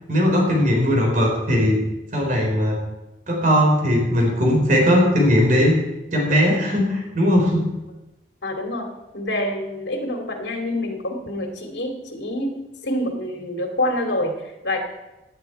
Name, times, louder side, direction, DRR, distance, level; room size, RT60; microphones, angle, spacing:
voice 1, 0.1-1.8 2.1-2.8 3.3-5.8 6.1-7.7, equal, 45° right, 0 dB, 3.9 m, -18 dB
voice 2, 8.4-12.5 12.8-14.8, left 1 dB, 75° left, 3 dB, 2.4 m, -27 dB
17.0 x 8.9 x 4.6 m, 0.99 s
head